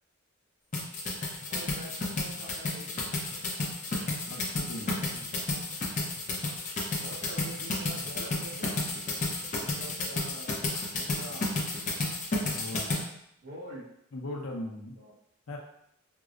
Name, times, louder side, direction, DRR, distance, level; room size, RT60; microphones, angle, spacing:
sound 1, 0.7-13.0, left 2 dB, 40° left, 0.6 m, -32 dB
voice 1, 1.5-3.1 4.7-5.5 7.0-8.9 9.6-10.5 11.0-11.5 13.4-13.8 14.5-15.1, right 1 dB, 50° right, -6 dB, 1.2 m, -45 dB
voice 2, 4.3-5.0 12.5-12.9 14.1-15.0 15.5-15.6, left 1 dB, 85° left, 0 dB, 0.7 m, -38 dB
4.5 x 2.0 x 2.5 m, 0.74 s
head